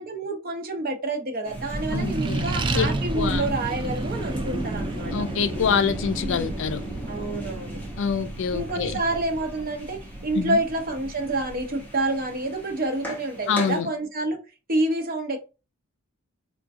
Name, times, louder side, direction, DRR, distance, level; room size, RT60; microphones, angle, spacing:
voice 1, 0.0-5.3 6.2-6.6 7.1-7.8 8.5-14.4 14.7-15.4, right 2 dB, 45° right, 0.8 m, -28 dB
sound 1, 1.4-13.8, left 1 dB, 10° left, 0.9 m, -40 dB
Accelerating revving vroom, 1.5-12.4, right 2 dB, 25° right, 0.3 m, -31 dB
voice 2, 1.9-2.5 2.7-2.9 3.1-3.5 5.1-6.8 8.0-9.0 10.4-10.6 13.5-13.9, left 6 dB, 60° left, 0.4 m, -25 dB
3.6 x 2.5 x 2.5 m
head